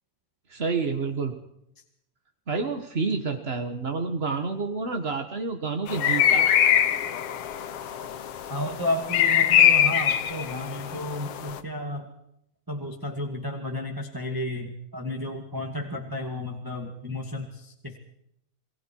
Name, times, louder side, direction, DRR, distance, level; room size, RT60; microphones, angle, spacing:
voice 1, 0.5-1.4 2.5-6.6, right 4 dB, 45° right, 5 dB, 0.8 m, -29 dB
sound 1, 5.9-11.6, left 9 dB, 60° left, 1.8 m, -23 dB
voice 2, 8.5-12.1 12.7-18.0, left 1 dB, 10° right, 2 dB, 1.6 m, -32 dB
28.5 x 20.5 x 4.7 m, 0.77 s
omnidirectional pair, 3.5 m